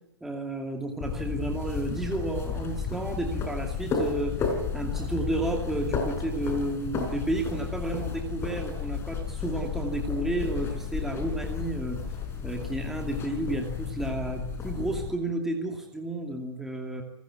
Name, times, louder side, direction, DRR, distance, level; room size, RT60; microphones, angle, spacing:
voice 1, 0.2-4.5 4.7-12.0 12.4-17.0, right 2 dB, ahead, 1 dB, 2.5 m, -32 dB
sound 1, 1.0-15.1, left 6 dB, 20° left, 4.8 m, -32 dB
28.0 x 20.0 x 8.4 m, 0.93 s
hypercardioid pair, 145°, 14 cm